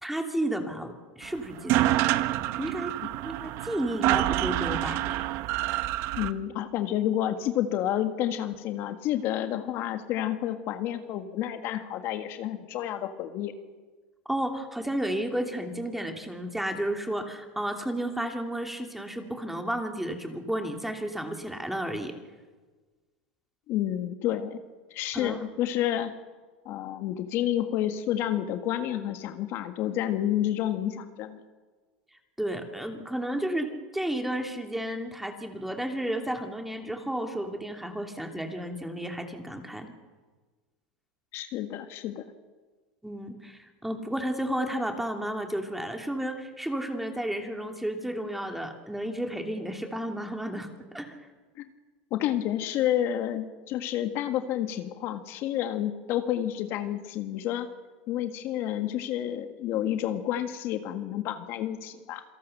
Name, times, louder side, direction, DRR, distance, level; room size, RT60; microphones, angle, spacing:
voice 1, 0.0-2.0 2.6-2.9 3.2-5.0 14.2-22.1 25.1-25.4 32.4-39.9 43.0-51.1, right 1 dB, 5° right, 4 dB, 2.7 m, -32 dB
sound 1, 1.2-1.3 1.5-6.3, right 15 dB, 60° right, 1.0 m, -27 dB
voice 2, 6.2-13.5 23.7-24.6 24.9-26.1 26.6-31.4 41.3-42.2 51.6-51.7 52.1-57.7 58.1-62.2, left 11 dB, 55° left, 8 dB, 1.6 m, -30 dB
27.0 x 17.5 x 6.7 m, 1.4 s
supercardioid pair, 115°, 5 cm